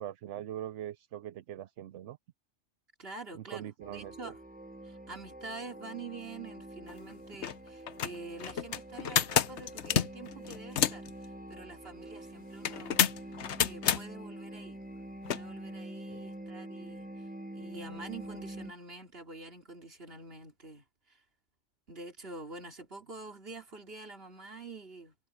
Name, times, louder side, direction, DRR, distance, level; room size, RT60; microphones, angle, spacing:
voice 1, 0.0-2.2 3.3-4.3 16.1-16.2, right 11 dB, 65° right, 0.9 m, -42 dB
voice 2, 3.0-4.3 4.8-11.1 11.5-13.1 13.6-14.8 15.3-17.1 17.6-21.2 21.9-25.1, right 3 dB, 45° right, 3.0 m, -46 dB
sound 1, 3.8-18.7, right 1 dB, 10° right, 0.6 m, -46 dB
sound 2, 6.9-7.0 7.3-7.5 7.9-11.1 12.6-14.0 15.2-15.4, left 9 dB, 60° left, 1.0 m, -29 dB
omnidirectional pair, 1.4 m